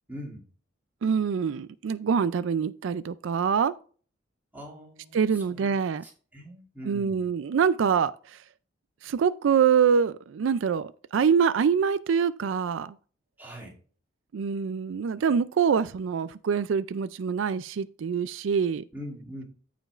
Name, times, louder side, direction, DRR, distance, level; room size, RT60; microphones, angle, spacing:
voice 1, 0.1-0.4 4.5-5.7 6.0-7.3 13.4-13.8 18.9-19.4, equal, 10° right, 2.5 m, -42 dB
voice 2, 1.0-3.7 5.1-6.0 6.9-8.4 9.0-12.9 14.3-18.8, right 6 dB, 80° right, 0.4 m, -25 dB
14.5 x 5.1 x 2.4 m
head